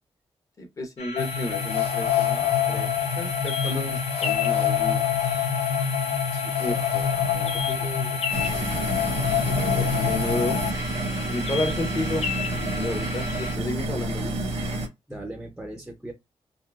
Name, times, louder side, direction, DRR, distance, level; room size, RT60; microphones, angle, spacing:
voice 1, 0.6-5.0 6.6-6.9 9.4-10.6 11.3-14.3, left 1 dB, 30° left, 0.8 m, -32 dB
sound 1, 1.0-13.6, left 3 dB, 90° left, 1.0 m, -34 dB
sound 2, 1.2-10.7, left 8 dB, 65° left, 0.5 m, -26 dB
voice 2, 6.3-8.2 15.1-16.1, right 1 dB, 5° right, 0.5 m, -40 dB
sound 3, 8.3-14.9, right 1 dB, 90° right, 1.1 m, -29 dB
3.7 x 2.4 x 2.3 m
wide cardioid pair, 170°, 10 cm